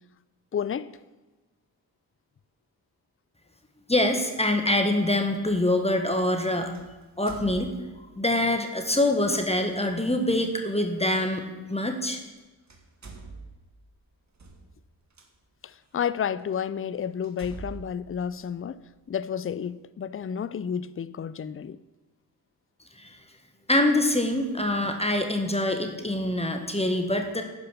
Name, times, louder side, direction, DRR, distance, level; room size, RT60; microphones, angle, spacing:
voice 1, 0.5-1.0 15.6-18.8 19.1-21.8, left 8 dB, 30° left, 0.5 m, -31 dB
voice 2, 3.9-6.7 7.2-7.7 8.2-12.2 23.0-23.2 23.7-27.4, left 1 dB, 15° left, 1.6 m, -25 dB
sound 1, 4.7-4.8 6.7-8.2 9.2-9.4 11.2-11.3 12.2-12.4 12.7-15.3 15.9-16.0 16.5-16.6 17.2-19.0, right 4 dB, 40° right, 1.7 m, -45 dB
10.5 x 5.3 x 6.8 m
cardioid pair, 45°, 41 cm